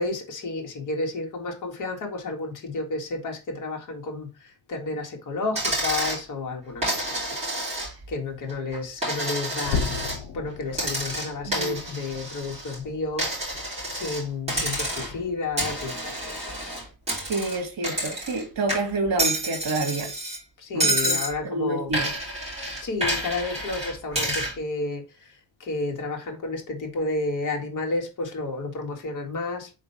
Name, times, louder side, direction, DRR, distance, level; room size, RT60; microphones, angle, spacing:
voice 1, 0.0-16.8 20.6-21.9 22.8-29.7, left 3 dB, 50° left, 1.9 m, -32 dB
Coin (dropping), 5.5-6.2 6.8-8.1 8.5-10.2 10.7-12.8 13.2-14.2 14.5-15.2 15.6-18.4 18.7-20.4 20.8-21.3 21.9-24.5, right 1 dB, 15° right, 3.2 m, -29 dB
sound 1, 9.6-16.3 16.7-16.9 17.4-17.5 18.1-18.2, left 5 dB, 75° left, 1.0 m, -37 dB
voice 2, 17.3-20.1 20.7-21.2 21.4-22.1, right 2 dB, 60° right, 2.0 m, -28 dB
4.5 x 3.8 x 5.5 m
cardioid pair, 155°, 40 cm